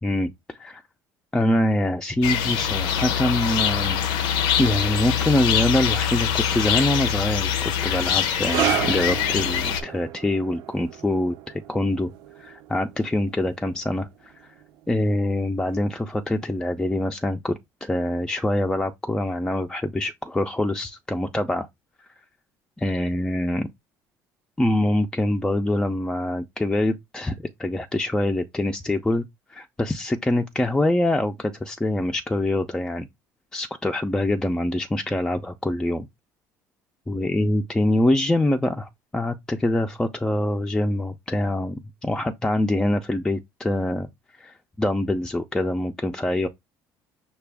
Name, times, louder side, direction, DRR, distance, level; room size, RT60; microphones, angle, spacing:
voice 1, 0.0-0.8 1.3-4.1 4.6-12.1 12.4-14.5 14.9-21.7 22.8-23.7 24.6-29.2 29.5-33.1 33.5-36.1 37.1-44.1 44.3-46.5, left 1 dB, 10° left, 0.4 m, -24 dB
sound 1, 2.2-9.8, left 8 dB, 85° left, 0.6 m, -24 dB
sound 2, 8.5-15.5 15.7-16.0 16.7-16.8, right 12 dB, 70° right, 0.6 m, -32 dB
5.8 x 2.3 x 3.4 m
cardioid pair, 115°, 7 cm